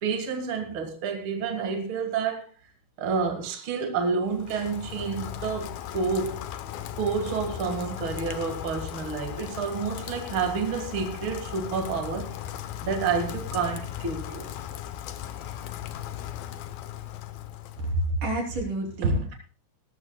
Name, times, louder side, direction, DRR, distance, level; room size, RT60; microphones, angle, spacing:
voice 1, 0.0-2.5 3.0-6.4 6.9-12.3 12.8-14.5 19.0-19.3, right 5 dB, 70° right, 1.1 m, -29 dB
Rain, 4.3-18.1, left 11 dB, 85° left, 2.1 m, -37 dB
voice 2, 17.9-19.3, right 1 dB, 45° right, 4.5 m, -29 dB
19.5 x 14.0 x 2.3 m
omnidirectional pair, 5.6 m